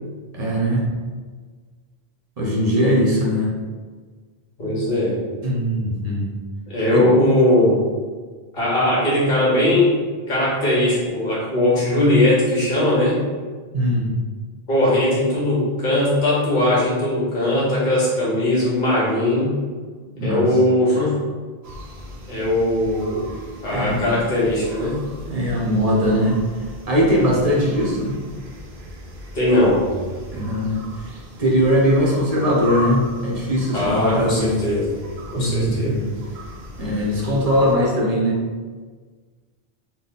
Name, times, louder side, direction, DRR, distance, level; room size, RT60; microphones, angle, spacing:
voice 1, 0.3-0.9 2.4-3.5 5.4-6.3 6.9-7.0 13.7-14.1 20.1-20.4 23.7-24.1 25.3-26.4 26.9-28.2 30.3-30.8 31.4-34.6 35.4-36.0 36.8-38.4, equal, 40° right, -4 dB, 0.9 m, -20 dB
voice 2, 4.6-5.2 6.7-7.7 8.5-10.0 10.3-13.2 14.7-19.5 20.2-21.1 22.3-23.2 23.6-25.0 29.3-29.8 33.7-34.9 35.3-36.0, left 1 dB, 50° left, -7 dB, 1.6 m, -19 dB
sound 1, 21.6-37.8, equal, 80° right, 1.0 m, -37 dB
4.1 x 2.2 x 3.9 m, 1.5 s
omnidirectional pair, 1.0 m